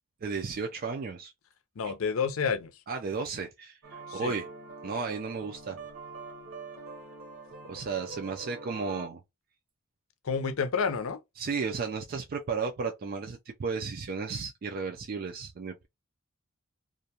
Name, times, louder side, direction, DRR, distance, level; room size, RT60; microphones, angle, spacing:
voice 1, 0.2-1.3 1.8-1.9 2.9-4.5 4.8-5.8 7.6-9.2 11.4-15.9, right 5 dB, 45° right, 0.4 m, -34 dB
voice 2, 1.8-2.7 4.1-4.4 10.2-11.2, left 5 dB, 75° left, 0.5 m, -29 dB
sound 1, 3.8-9.1, right 3 dB, 70° right, 1.0 m, -44 dB
2.5 x 2.2 x 2.8 m
head